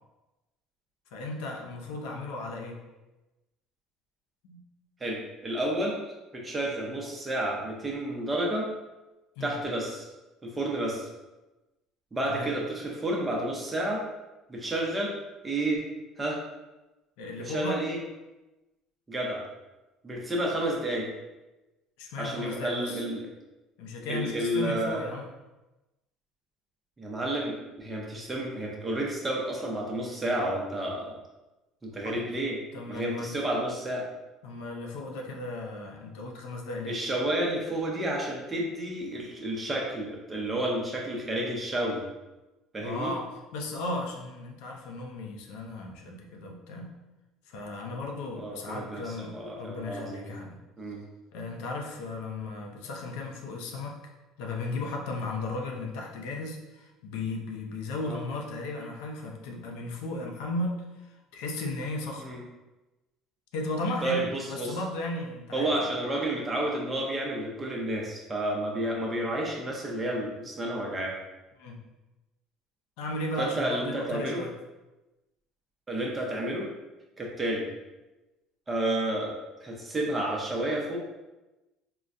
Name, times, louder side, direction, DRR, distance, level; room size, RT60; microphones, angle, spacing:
voice 1, 1.1-2.8 4.4-4.6 9.4-9.5 12.2-12.5 17.2-17.8 22.0-23.0 23.8-25.3 32.0-32.2 32.7-33.3 34.4-37.0 42.8-46.9 47.5-50.6 51.3-54.0 54.4-62.4 63.5-65.9 71.6-71.8 73.0-74.5, left 2 dB, 85° left, 1 dB, 0.5 m, -35 dB
voice 2, 5.0-6.0 6.3-8.7 9.4-10.1 10.4-11.1 12.1-14.0 14.5-15.2 15.4-15.8 16.2-16.4 17.4-18.0 19.1-19.4 20.0-21.1 22.2-23.2 24.0-25.0 27.0-31.2 31.8-32.6 32.9-34.1 36.9-42.0 42.7-43.1 48.3-50.4 50.8-51.0 58.0-58.2 62.2-62.4 64.0-64.8 65.5-71.1 73.4-74.4 75.9-76.7 77.2-77.7 78.7-81.0, right 1 dB, 20° right, -1 dB, 0.7 m, -31 dB
3.7 x 2.2 x 2.5 m, 1.1 s
supercardioid pair, 110°, 0 cm